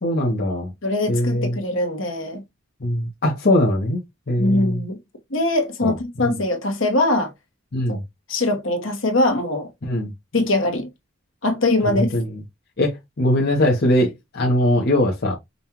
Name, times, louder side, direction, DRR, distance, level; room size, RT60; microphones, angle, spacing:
voice 1, 0.0-0.7 1.1-1.6 2.8-4.8 5.8-5.9 6.2-6.4 7.7-8.0 9.8-10.1 11.9-12.3 12.8-15.4, left 1 dB, 55° left, 0.9 m, -21 dB
voice 2, 0.8-2.4 4.4-5.0 5.3-7.3 7.9-8.0 8.3-9.7 10.3-10.9 11.4-12.1, left 2 dB, 70° left, 1.1 m, -22 dB
5.3 x 2.3 x 2.9 m
head